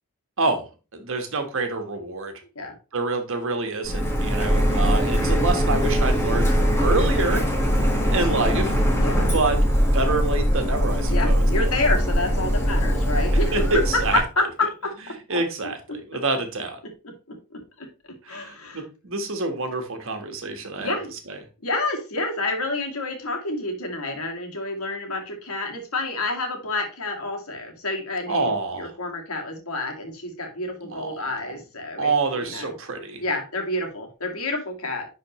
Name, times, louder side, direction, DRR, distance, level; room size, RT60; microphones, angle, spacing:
voice 1, 0.4-2.3 2.9-7.4 8.1-8.8 9.2-11.5 13.5-14.2 15.3-16.8 18.2-20.9 21.3-21.4 28.3-28.9 30.8-31.5 32.0-33.2, right 3 dB, 60° right, 6 dB, 1.4 m, -27 dB
Printer, 3.8-14.2, equal, 10° left, 1.6 m, -21 dB
voice 2, 9.0-9.3 11.1-13.7 14.4-14.5 15.3-15.4 16.1-16.2 17.0-17.4 17.8-17.9 18.3-18.8 20.8-21.1 21.6-32.1 32.4-32.7 33.2-35.1, left 2 dB, 75° left, 2 dB, 2.1 m, -29 dB
10.5 x 4.1 x 3.1 m, 0.32 s
head